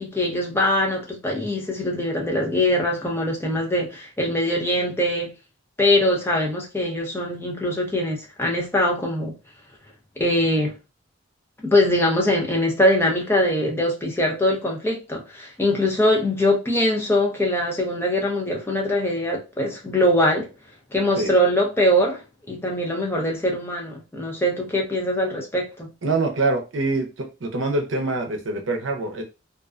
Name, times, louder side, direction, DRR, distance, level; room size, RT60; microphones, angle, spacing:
voice 1, 0.0-5.3 5.8-9.3 10.2-10.7 11.6-20.5 20.9-22.2 22.5-25.9, left 1 dB, 10° left, 0.5 m, -22 dB
voice 2, 26.0-29.2, right 2 dB, 75° right, 0.6 m, -25 dB
2.4 x 2.2 x 2.4 m
head